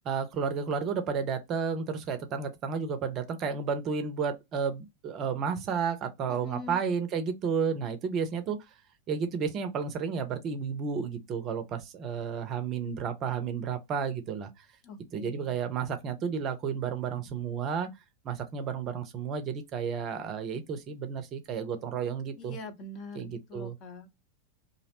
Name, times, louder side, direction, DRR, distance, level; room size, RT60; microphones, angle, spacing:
voice 1, 0.0-8.6 9.1-14.7 15.1-17.9 18.2-22.6 23.1-23.7, right 6 dB, 35° right, 0.5 m, -32 dB
voice 2, 6.3-6.8 14.8-15.5 22.4-24.1, left 3 dB, 35° left, 0.7 m, -44 dB
2.6 x 2.0 x 2.8 m
figure-of-eight pair, 90°, 0 cm